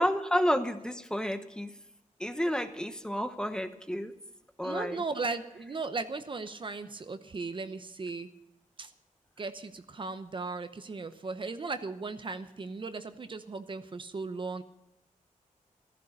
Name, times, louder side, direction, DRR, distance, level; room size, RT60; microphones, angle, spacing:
voice 1, 0.0-1.8 2.2-4.1 4.6-5.0, equal, 5° left, 8 dB, 1.0 m, -30 dB
voice 2, 4.6-8.3 8.8-8.9 9.4-14.6, right 3 dB, 35° right, 9 dB, 0.8 m, -37 dB
15.0 x 13.5 x 6.5 m, 0.86 s
wide cardioid pair, 120°, 14 cm